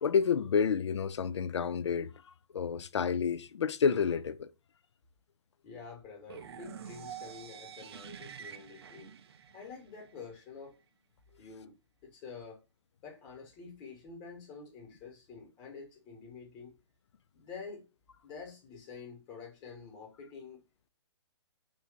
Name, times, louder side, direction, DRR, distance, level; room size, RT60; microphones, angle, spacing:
voice 1, 0.0-2.1 2.5-4.5, left 6 dB, 70° left, 0.4 m, -29 dB
voice 2, 5.6-9.1 9.5-10.7 11.4-11.7 12.0-12.6 13.0-16.8 17.3-17.8 18.2-20.6, left 5 dB, 25° left, 1.3 m, -48 dB
sound 1, 6.3-10.2, right 8 dB, 60° right, 0.4 m, -47 dB
3.1 x 2.6 x 3.7 m
figure-of-eight pair, 130°, 15 cm